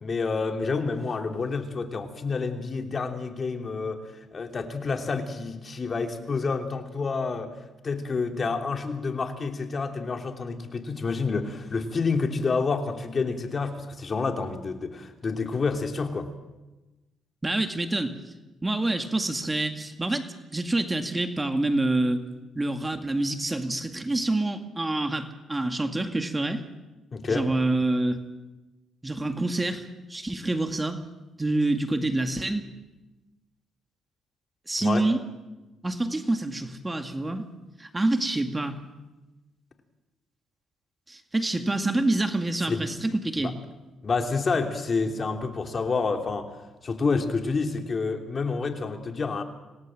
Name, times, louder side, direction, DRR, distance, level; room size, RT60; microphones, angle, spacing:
voice 1, 0.0-4.0 4.3-7.5 7.8-16.3 27.1-27.5 34.8-35.0 42.7-42.8 43.4-43.5 44.0-46.5 46.8-49.4, left 4 dB, 40° left, 5 dB, 3.1 m, -28 dB
voice 2, 17.4-18.2 18.6-22.2 22.6-26.6 27.3-28.2 29.0-31.0 31.4-32.7 34.7-35.2 35.8-37.5 37.8-38.8 41.1-43.6, right 2 dB, 15° right, 7 dB, 2.2 m, -27 dB
26.5 x 18.0 x 7.7 m, 1.1 s
cardioid pair, 90°, 0 cm